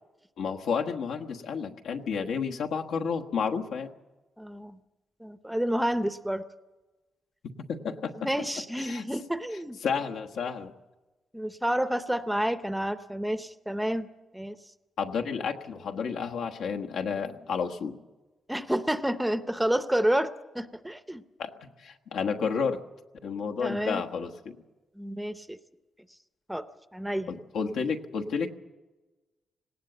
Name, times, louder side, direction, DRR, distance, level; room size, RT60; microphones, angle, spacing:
voice 1, 0.4-3.9 7.6-8.3 8.8-9.0 9.8-10.7 15.0-18.0 21.4-22.8 23.2-24.6 27.3-28.5, left 6 dB, 80° left, 3 dB, 1.3 m, -31 dB
voice 2, 4.4-4.8 5.2-6.4 8.2-9.8 11.3-14.1 14.3-14.6 18.5-21.2 23.6-24.0 25.0-25.6 26.5-26.6 26.9-27.3, right 1 dB, 5° right, 11 dB, 0.6 m, -29 dB
18.5 x 18.5 x 7.9 m, 1.1 s
wide cardioid pair, 165°, 0 cm